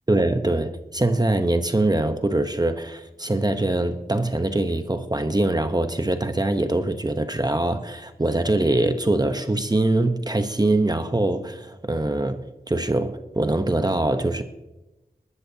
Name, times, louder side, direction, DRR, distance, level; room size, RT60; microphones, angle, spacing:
voice 1, 0.1-14.4, right 2 dB, 25° right, 0.9 m, -23 dB
20.5 x 12.5 x 2.8 m
wide cardioid pair, 55°, 16 cm